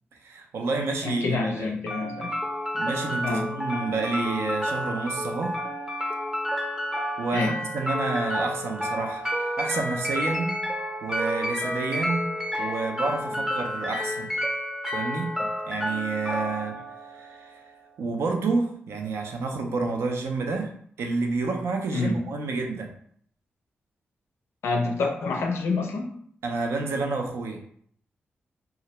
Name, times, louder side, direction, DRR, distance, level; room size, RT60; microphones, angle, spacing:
voice 1, 0.2-1.7 2.7-5.6 7.2-10.6 11.0-12.3 12.6-14.3 14.9-16.8 17.1-17.6 18.0-20.7 21.0-22.9 26.4-27.6, right 3 dB, 85° right, 2 dB, 0.4 m, -29 dB
voice 2, 1.0-2.3 3.2-3.5 7.3-7.6 21.9-22.2 24.6-26.1, left 3 dB, 90° left, 2 dB, 0.4 m, -27 dB
sound 1, 1.9-17.9, equal, 10° right, 0.6 m, -30 dB
2.3 x 2.0 x 2.8 m, 0.63 s
cardioid pair, 65°, 4 cm